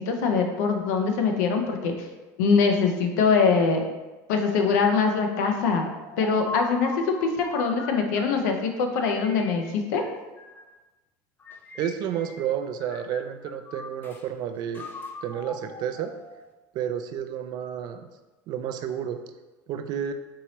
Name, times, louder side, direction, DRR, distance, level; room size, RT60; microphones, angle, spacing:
voice 1, 0.0-1.9 2.4-3.8 4.3-5.9 6.2-10.0, left 5 dB, 90° left, 3 dB, 0.6 m, -23 dB
sound 1, 5.7-8.5 8.9-10.7 11.4-12.5 12.8-14.2 14.7-16.5, left 3 dB, 20° left, 0.4 m, -41 dB
voice 2, 11.8-14.9 15.2-16.1 16.7-18.0 18.5-19.2 19.7-20.1, right 9 dB, 50° right, 9 dB, 0.4 m, -30 dB
4.6 x 2.8 x 3.0 m, 1.2 s
supercardioid pair, 125°, 9 cm